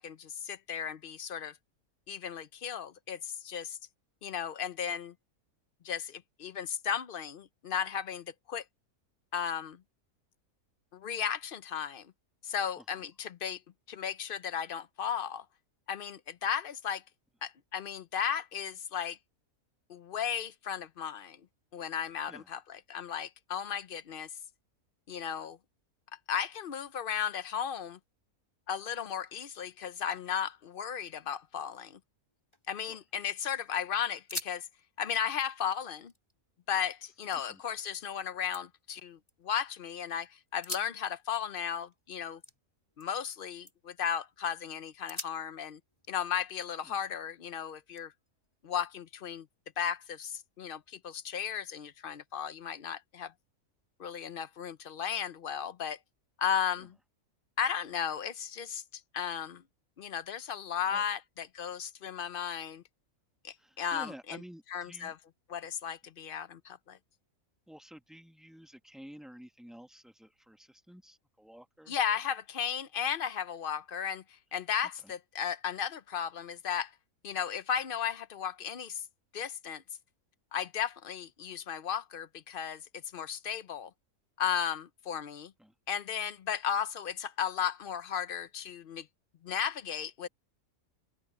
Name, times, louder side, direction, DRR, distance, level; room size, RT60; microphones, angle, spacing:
voice 1, 0.0-1.5 2.1-3.8 4.2-5.1 5.8-8.6 9.3-9.8 10.9-12.1 12.4-13.6 13.9-15.4 15.9-17.0 17.4-19.2 19.9-21.4 21.7-24.3 25.1-25.6 26.3-28.0 28.7-32.0 32.7-34.7 35.0-36.1 36.7-42.4 43.0-45.8 46.1-48.1 48.6-49.5 49.8-53.3 54.0-56.0 56.4-57.0 57.6-58.8 59.1-59.6 60.0-62.8 63.4-64.4 64.7-65.2 65.5-67.0 71.9-74.2 74.5-76.9 77.2-79.0 79.3-79.8 80.5-82.8 83.1-83.9 84.4-85.5 85.9-89.1 89.4-90.3, left 8 dB, 50° left, 0.7 m, -35 dB
sound 1, 32.3-33.3 33.6-33.7 34.1-34.6 34.9-36.9 37.3-37.8 38.2-39.8 40.5-43.3 43.6-44.0 44.5-44.6 45.1-47.3 48.0-49.1, left 1 dB, 20° left, 4.1 m, -47 dB
voice 2, 63.6-65.1 67.7-72.0 75.0-75.1 85.6-85.7, equal, ahead, 1.3 m, -51 dB
open air
omnidirectional pair, 1.5 m